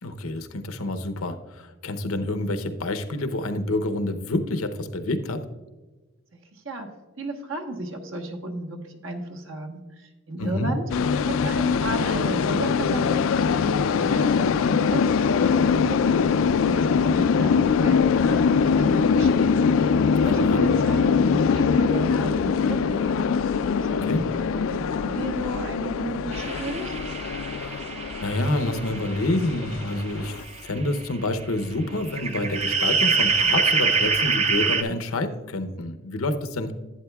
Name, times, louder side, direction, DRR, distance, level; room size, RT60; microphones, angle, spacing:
voice 1, 0.0-5.4 10.4-10.7 20.2-20.6 24.0-24.2 27.6-27.8 28.2-30.4 30.6-36.7, left 2 dB, 90° left, 8 dB, 0.8 m, -28 dB
voice 2, 6.5-6.9 7.2-10.8 11.3-16.2 16.6-18.0 18.2-19.6 20.2-23.3 23.8-26.9, right 2 dB, 70° right, 4 dB, 1.3 m, -33 dB
sound 1, 10.9-30.4, left 5 dB, 70° left, 0.3 m, -22 dB
sound 2, 26.3-30.9 31.2-31.3 32.1-34.8, right 5 dB, 30° right, 0.5 m, -25 dB
11.0 x 9.0 x 2.3 m, 1.2 s
head